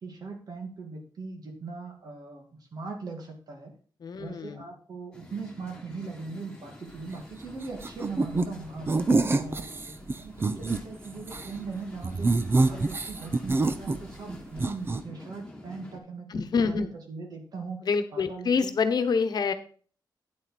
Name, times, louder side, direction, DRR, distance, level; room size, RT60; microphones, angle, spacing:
voice 1, 0.0-3.7 4.2-9.8 10.2-12.4 12.6-17.8 18.1-18.7, right 4 dB, 55° right, 2 dB, 2.3 m, -40 dB
voice 2, 4.0-4.7 16.3-16.9 17.8-19.5, left 5 dB, 60° left, 10 dB, 1.1 m, -26 dB
sound 1, 5.1-16.0, left 1 dB, 10° left, 1.9 m, -47 dB
sound 2, 7.8-8.5 8.9-10.8 11.2-11.5 12.0-14.3 14.6-15.0, right 3 dB, 30° right, 0.7 m, -26 dB
9.6 x 8.0 x 4.2 m, 0.43 s
wide cardioid pair, 165°, 8 cm